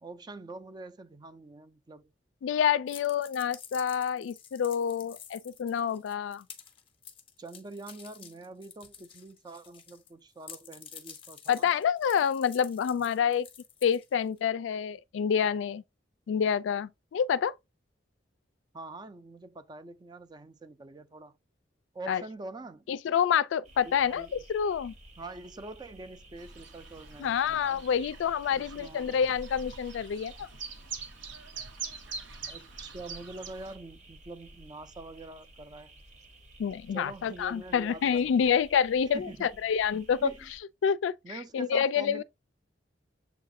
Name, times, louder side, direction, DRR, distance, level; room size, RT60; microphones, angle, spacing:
voice 1, 0.0-2.1 7.4-11.7 18.7-21.4 21.9-22.9 23.8-24.4 25.2-27.8 28.5-29.2 32.5-36.0 36.9-38.5 39.1-39.6 40.2-40.5 41.2-42.2, right 2 dB, 25° right, 0.4 m, -45 dB
voice 2, 2.4-6.4 11.5-13.5 13.8-15.8 16.3-17.5 22.1-22.2 22.9-24.9 27.2-30.5 36.6-40.3 40.8-41.1 41.5-42.2, left 7 dB, 80° left, 0.3 m, -27 dB
sound 1, 2.9-10.1 10.4-14.4, left 8 dB, 30° left, 0.6 m, -50 dB
sound 2, 23.6-40.6, right 1 dB, 40° right, 0.8 m, -54 dB
Chirp tweet, 26.4-33.8, right 5 dB, 75° right, 0.8 m, -44 dB
6.9 x 2.4 x 2.6 m
head